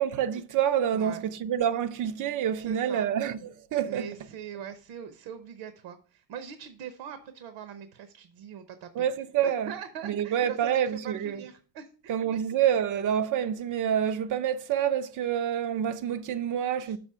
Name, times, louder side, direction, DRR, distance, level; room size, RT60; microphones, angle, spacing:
voice 1, 0.0-4.1 8.9-9.7 10.0-11.4 12.1-17.0, right 9 dB, 45° right, 0.5 m, -27 dB
voice 2, 2.6-3.0 3.8-9.0 9.4-12.4 16.8-17.0, right 8 dB, 75° right, 0.9 m, -42 dB
6.1 x 5.7 x 5.5 m
cardioid pair, 150°, 44 cm